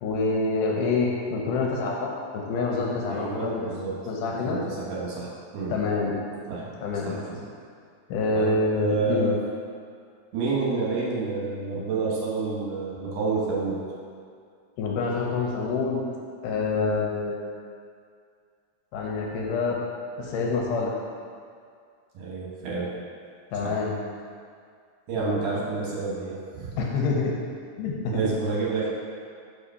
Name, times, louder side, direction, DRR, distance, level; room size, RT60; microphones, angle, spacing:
voice 1, 0.0-3.7 4.1-4.6 5.7-6.1 6.8-7.1 8.1-9.3 14.8-16.0 16.4-17.4 18.9-19.8 20.2-20.9 23.5-23.9 25.2-25.4 26.8-27.3 27.8-28.3, left 3 dB, 75° left, -2 dB, 2.1 m, -26 dB
voice 2, 3.1-5.8 6.5-6.7 7.0-7.4 8.3-9.4 10.3-13.8 16.7-17.0 22.1-22.9 23.6-23.8 25.1-26.7 28.1-28.9, right 4 dB, 70° right, -5 dB, 2.6 m, -29 dB
5.0 x 4.9 x 5.5 m, 2.2 s
omnidirectional pair, 4.1 m